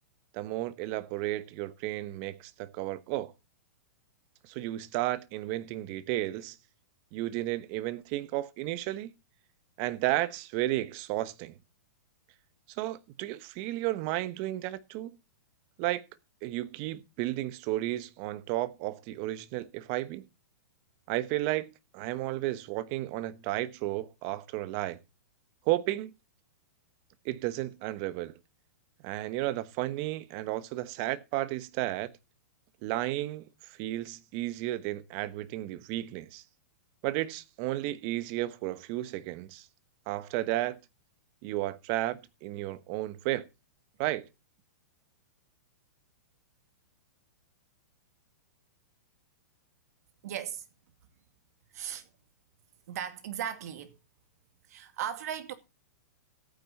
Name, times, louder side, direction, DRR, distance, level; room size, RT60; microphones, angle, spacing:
voice 1, 0.3-3.3 4.4-6.6 7.1-9.1 9.8-11.5 12.7-15.1 15.8-16.0 16.4-20.3 21.1-21.7 21.9-25.0 25.6-26.1 27.2-28.4 29.0-32.1 32.8-36.4 37.0-39.7 40.1-40.8 41.4-43.5 44.0-44.3, right 16 dB, 40° right, 1.1 m, -33 dB
voice 2, 50.2-50.7 51.7-52.1 52.9-54.0 54.7-55.5, right 9 dB, 60° right, 2.4 m, -37 dB
14.5 x 9.2 x 4.2 m
hypercardioid pair, 145°, 9 cm